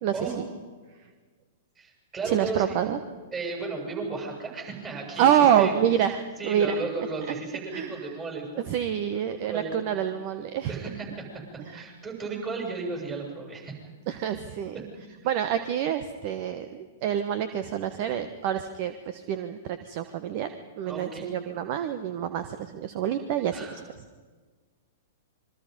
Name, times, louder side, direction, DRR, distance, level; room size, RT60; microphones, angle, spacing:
voice 1, 0.0-0.4 2.2-3.0 5.2-6.7 7.7-7.9 8.7-10.7 11.7-11.8 14.1-14.7 15.2-23.7, right 9 dB, 45° right, 10 dB, 1.2 m, -27 dB
voice 2, 1.8-2.8 3.3-5.8 6.4-8.7 9.1-9.8 10.7-11.2 11.7-13.8 14.7-14.8 20.8-21.3 23.5-23.8, right 4 dB, 25° right, 1 dB, 7.6 m, -34 dB
26.5 x 23.0 x 5.4 m, 1.4 s
figure-of-eight pair, 105°, 0 cm